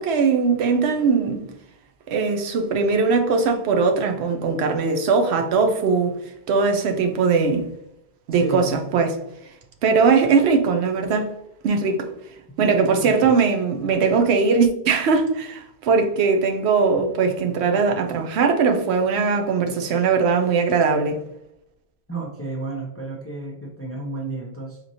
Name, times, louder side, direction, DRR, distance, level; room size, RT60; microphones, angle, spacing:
voice 1, 0.0-1.5 2.1-6.1 6.5-7.7 8.3-9.2 9.8-11.3 11.6-12.1 12.6-21.2, right 5 dB, 80° right, 0.9 m, -20 dB
voice 2, 8.3-8.7 12.6-13.4 22.1-24.8, right 3 dB, 20° left, 0.4 m, -32 dB
4.2 x 3.0 x 2.6 m
omnidirectional pair, 1.1 m